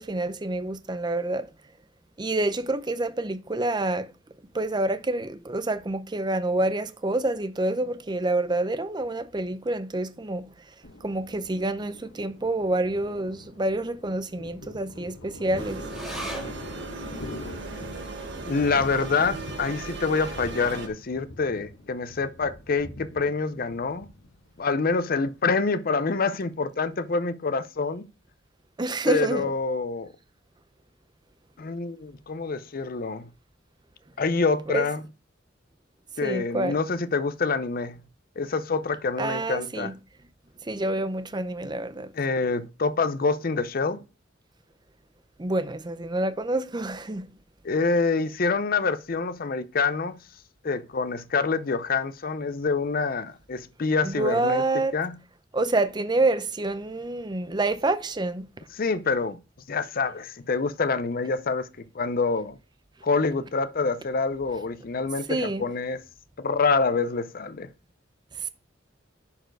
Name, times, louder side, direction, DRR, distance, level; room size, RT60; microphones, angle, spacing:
voice 1, 0.0-1.5 2.2-4.1 4.5-10.5 11.0-15.8 28.8-29.5 34.7-34.8 36.2-36.8 39.2-39.9 40.6-42.1 45.4-47.3 54.0-54.9 55.5-58.5 65.3-65.6 68.3-68.5, right 2 dB, 25° right, 0.6 m, -27 dB
Thunder, 10.8-25.6, left 1 dB, 80° left, 1.9 m, -44 dB
sound 1, 15.5-20.9, right 3 dB, 65° right, 1.7 m, -37 dB
sound 2, 15.9-22.6 23.0-23.1 23.4-24.1 24.6-24.7, right 1 dB, ahead, 2.0 m, -45 dB
voice 2, 18.4-24.1 24.6-28.1 29.1-30.1 31.6-33.3 34.2-35.0 36.2-38.0 38.4-39.9 42.2-44.0 47.6-50.2 50.6-54.6 54.9-55.1 58.8-59.4 59.7-61.7 61.9-62.6 63.0-66.0 66.4-67.7, left 4 dB, 50° left, 0.6 m, -26 dB
11.0 x 4.6 x 4.6 m
head